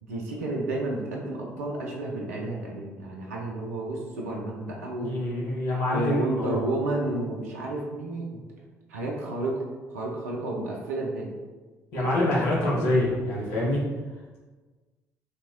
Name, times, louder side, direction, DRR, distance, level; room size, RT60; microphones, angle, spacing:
voice 1, 0.0-5.2 5.9-8.4 8.9-11.3 11.9-12.1, right 2 dB, 85° right, -2 dB, 0.5 m, -31 dB
voice 2, 5.0-6.7 11.9-13.8, left 1 dB, 75° left, -5 dB, 0.9 m, -26 dB
3.3 x 2.7 x 2.9 m, 1.3 s
hypercardioid pair, 50°, 8 cm